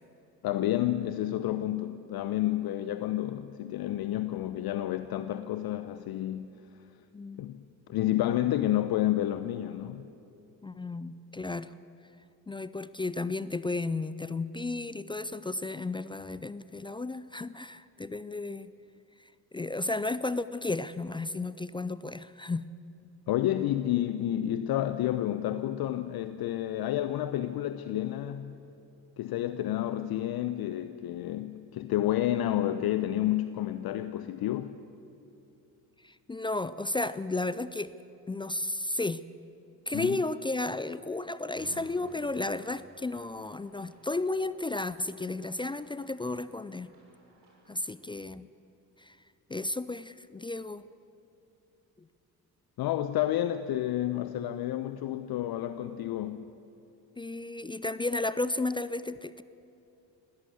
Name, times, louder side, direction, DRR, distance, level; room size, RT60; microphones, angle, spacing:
voice 1, 0.4-6.5 7.4-7.6 7.9-10.1 23.3-28.6 29.2-34.8 39.9-40.2 52.8-56.5, left 13 dB, 45° left, 12 dB, 0.8 m, -30 dB
voice 2, 7.1-7.5 10.6-11.7 12.5-18.7 19.2-22.7 36.0-37.9 38.3-39.2 39.9-46.9 47.7-48.5 49.0-49.2 49.5-50.8 52.0-52.1 57.2-59.4, left 2 dB, 10° left, 16 dB, 0.4 m, -33 dB
sound 1, 41.5-47.9, right 2 dB, 50° right, 6.4 m, -57 dB
21.0 x 17.5 x 8.0 m, 2.9 s
figure-of-eight pair, 45°, 50 cm